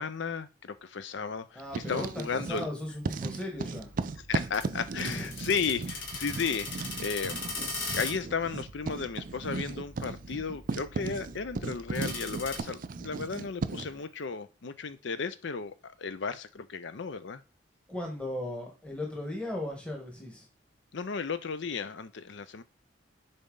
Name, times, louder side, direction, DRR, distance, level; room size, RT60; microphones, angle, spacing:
voice 1, 0.0-2.7 4.3-7.4 7.9-17.4 20.9-22.6, left 5 dB, 60° left, 0.5 m, -34 dB
voice 2, 1.5-3.9 5.0-5.4 17.9-20.5, left 1 dB, 5° left, 1.4 m, -37 dB
Writing, 1.6-2.7 3.0-14.0, right 4 dB, 40° right, 0.4 m, -37 dB
sound 1, 3.8-12.6, left 3 dB, 80° left, 2.1 m, -41 dB
7.0 x 4.1 x 3.9 m
head